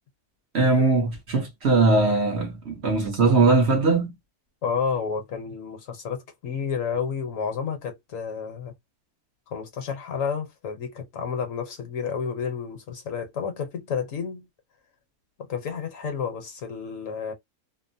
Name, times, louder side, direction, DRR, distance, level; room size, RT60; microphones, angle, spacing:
voice 1, 0.5-4.1, right 3 dB, 50° right, 1.1 m, -20 dB
voice 2, 4.6-8.7 9.5-14.5 15.4-17.3, left 6 dB, 65° left, 1.1 m, -30 dB
2.9 x 2.1 x 2.6 m
omnidirectional pair, 1.6 m